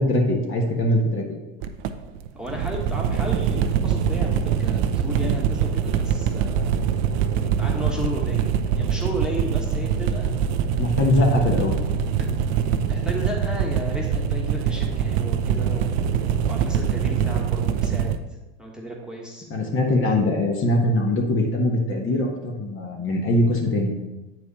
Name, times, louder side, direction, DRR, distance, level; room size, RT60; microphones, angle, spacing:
voice 1, 0.0-1.4 10.8-11.8 19.5-23.9, left 1 dB, 35° left, 1 dB, 1.4 m, -22 dB
sound 1, 1.6-18.2, right 7 dB, 60° right, 0.7 m, -23 dB
voice 2, 2.3-6.8 7.4-10.3 10.6-10.8 12.2-12.4 12.9-16.1 16.5-18.1 18.6-19.5, equal, ahead, -2 dB, 1.4 m, -34 dB
8.6 x 4.8 x 4.2 m, 1.1 s
hypercardioid pair, 100°, 35 cm